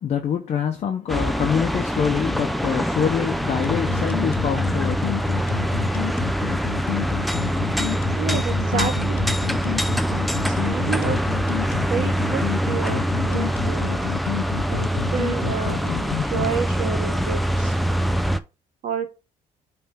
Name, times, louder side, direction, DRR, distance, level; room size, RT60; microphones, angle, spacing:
voice 1, 0.0-5.3 5.6-5.7, left 8 dB, 45° left, 0.9 m, -25 dB
sound 1, 1.1-18.4, equal, ahead, 0.5 m, -24 dB
sound 2, 3.6-16.5, left 18 dB, 85° left, 0.5 m, -29 dB
voice 2, 8.2-9.4 10.5-11.5 11.9-14.1 14.7-17.8 18.8-19.1, right 7 dB, 60° right, 1.8 m, -30 dB
8.8 x 3.5 x 4.6 m
cardioid pair, 130°, 15 cm